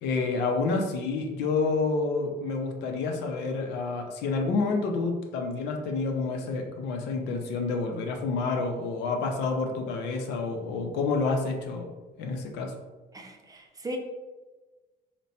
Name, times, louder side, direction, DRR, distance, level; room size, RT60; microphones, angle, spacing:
voice 1, 0.0-11.9 12.2-12.7, left 4 dB, 85° left, 3 dB, 0.6 m, -29 dB
voice 2, 13.1-14.0, right 1 dB, 20° right, 2 dB, 0.6 m, -38 dB
4.0 x 2.2 x 4.1 m, 1.2 s
cardioid pair, 110°, 17 cm